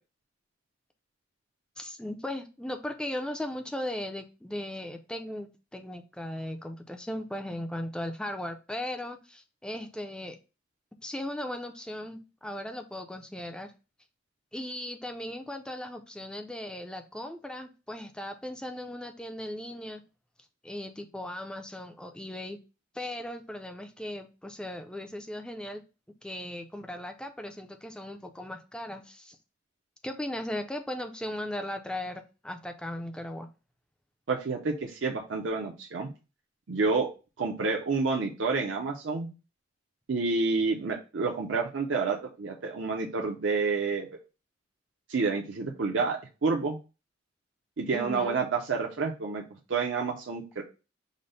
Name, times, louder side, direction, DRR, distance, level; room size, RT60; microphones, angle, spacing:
voice 1, 1.8-10.4 11.0-13.7 14.5-20.0 20.6-22.6 22.9-25.8 26.2-29.4 30.0-33.5 47.9-48.4, left 1 dB, 5° left, 5 dB, 0.4 m, -37 dB
voice 2, 34.3-36.1 36.7-37.1 37.4-39.3 40.1-44.1 45.1-46.8 47.8-49.4 49.7-50.6, right 4 dB, 70° right, 0 dB, 0.6 m, -29 dB
5.1 x 2.1 x 4.0 m, 0.31 s
head